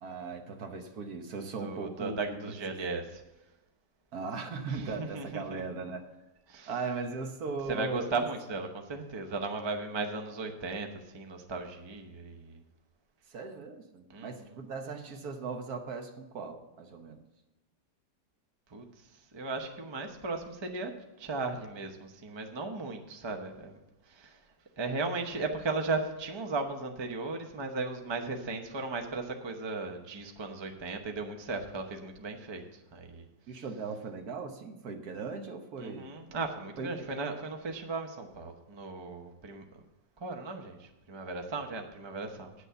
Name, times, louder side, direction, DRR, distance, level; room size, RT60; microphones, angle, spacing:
voice 1, 0.0-2.5 4.1-6.1 6.7-8.2 13.3-17.2 33.5-36.1 36.8-37.3, right 4 dB, 60° right, 5 dB, 1.4 m, -38 dB
voice 2, 1.6-3.2 4.7-5.6 6.5-6.7 7.7-12.6 14.1-14.6 18.7-24.4 24.8-33.3 35.8-39.8 40.2-42.5, right 3 dB, 25° right, 4 dB, 0.6 m, -36 dB
9.7 x 6.5 x 6.8 m, 1.0 s
omnidirectional pair, 1.9 m